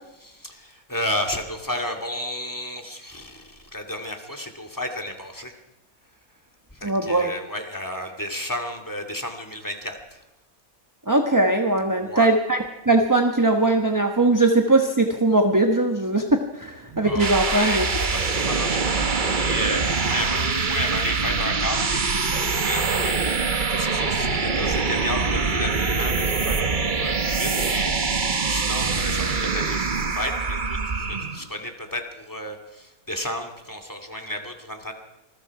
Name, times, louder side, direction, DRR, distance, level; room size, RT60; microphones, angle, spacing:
voice 1, 0.2-5.5 6.7-10.2 12.0-12.3 17.0-34.9, equal, 15° left, 6 dB, 2.4 m, -32 dB
voice 2, 6.8-7.3 11.1-12.6 12.9-17.9, right 2 dB, 15° right, 4 dB, 1.1 m, -20 dB
sound 1, 16.9-31.5, right 4 dB, 35° right, 1.2 m, -24 dB
26.5 x 21.0 x 4.9 m, 0.95 s
omnidirectional pair, 1.5 m